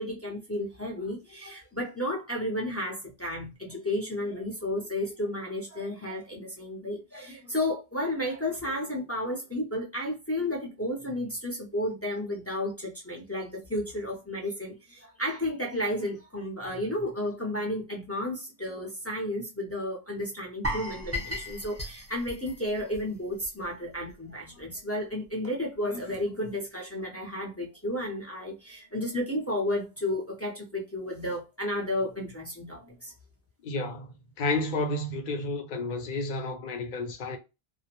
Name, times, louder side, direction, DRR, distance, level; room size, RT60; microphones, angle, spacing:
voice 1, 0.0-33.1, left 1 dB, 20° left, 0.5 m, -32 dB
sound 1, 20.6-23.6 23.9-24.1 24.6-24.7, equal, 15° right, 0.9 m, -36 dB
voice 2, 33.6-34.1 34.4-37.4, left 2 dB, 55° left, 0.7 m, -31 dB
2.4 x 2.1 x 2.9 m
omnidirectional pair, 1.1 m